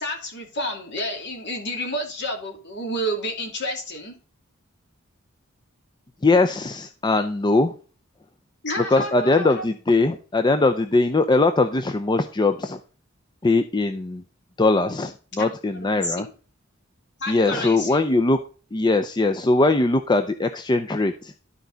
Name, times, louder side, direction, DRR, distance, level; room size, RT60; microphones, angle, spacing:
voice 1, 0.0-4.2 8.6-9.6 15.3-15.5 15.7-16.2 17.2-18.1, equal, 55° left, 3 dB, 2.6 m, -30 dB
voice 2, 6.2-7.7 8.8-12.8 13.4-14.2 14.6-16.3 17.3-18.4 18.7-21.3, left 2 dB, 20° left, 8 dB, 0.5 m, -21 dB
12.5 x 4.6 x 3.9 m, 0.38 s
head